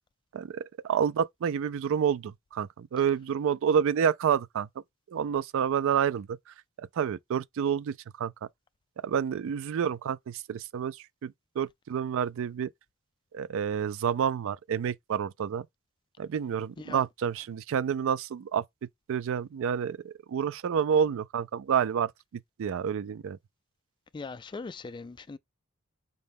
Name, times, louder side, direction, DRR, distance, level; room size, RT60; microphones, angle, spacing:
voice 1, 0.3-4.7 5.1-8.5 9.0-12.7 13.3-15.7 16.2-18.6 19.1-23.4, right 7 dB, 65° right, 0.3 m, -29 dB
voice 2, 24.1-25.4, left 4 dB, 20° left, 0.3 m, -40 dB
5.3 x 2.1 x 3.5 m
head